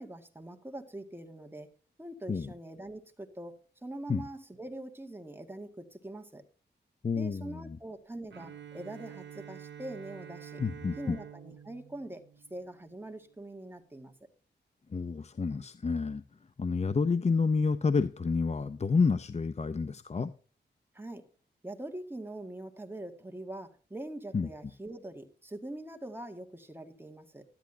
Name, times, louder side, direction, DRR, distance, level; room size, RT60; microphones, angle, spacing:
voice 1, 0.0-1.7 2.0-3.5 3.8-6.4 7.1-10.6 11.0-12.2 12.5-14.1 20.9-21.3 21.6-27.5, right 1 dB, 10° right, 2.0 m, -43 dB
voice 2, 7.0-7.8 10.6-11.2 14.9-16.2 16.6-20.3 24.3-24.5, left 4 dB, 35° left, 0.7 m, -29 dB
Bowed string instrument, 8.3-13.2, right 8 dB, 85° right, 1.1 m, -48 dB
12.5 x 10.5 x 2.8 m
cardioid pair, 65°, 19 cm